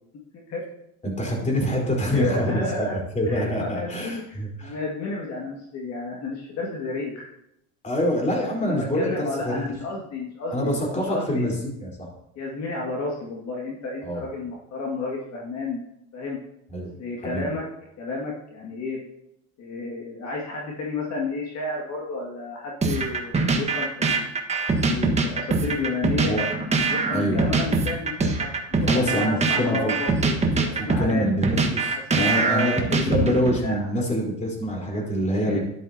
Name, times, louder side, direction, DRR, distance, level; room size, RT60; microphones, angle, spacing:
voice 1, 1.0-4.7 7.8-9.7 10.5-12.1 14.0-14.2 16.7-16.9 17.2-17.5 26.2-26.4 27.1-27.4 28.9-29.9 30.6-35.6, equal, 20° left, -1 dB, 4.2 m, -26 dB
voice 2, 2.1-3.0 3.3-7.3 8.6-11.5 12.4-15.8 16.1-16.4 17.0-17.6 18.0-19.0 19.6-24.3 24.8-26.3 26.9-30.3 30.8-31.3 31.9-33.9 35.4-35.6, left 3 dB, 50° left, -2 dB, 2.2 m, -31 dB
sound 1, 22.8-33.6, right 3 dB, 20° right, 1.5 m, -23 dB
12.0 x 10.5 x 2.9 m, 0.80 s
supercardioid pair, 105°, 33 cm